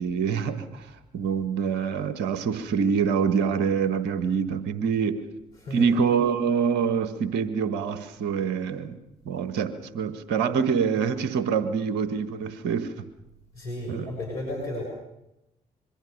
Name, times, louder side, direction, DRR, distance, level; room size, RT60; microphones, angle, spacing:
voice 1, 0.0-5.2 5.7-9.0 9.2-13.0 13.9-14.1, right 6 dB, 70° right, 11 dB, 1.6 m, -25 dB
voice 2, 13.5-14.8, left 1 dB, 85° left, -2 dB, 5.6 m, -33 dB
25.0 x 23.0 x 6.6 m, 0.89 s
hypercardioid pair, 45°, 19 cm